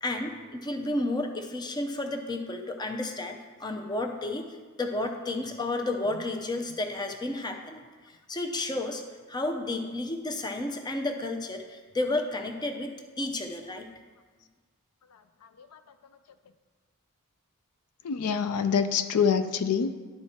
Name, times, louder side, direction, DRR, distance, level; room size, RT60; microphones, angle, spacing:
voice 1, 0.0-4.5 4.8-7.8 8.3-9.0 9.3-13.9, left 2 dB, 20° left, 4 dB, 0.6 m, -32 dB
voice 2, 18.0-19.9, left 6 dB, 85° left, 10 dB, 0.4 m, -26 dB
10.5 x 4.6 x 4.3 m, 1.4 s
head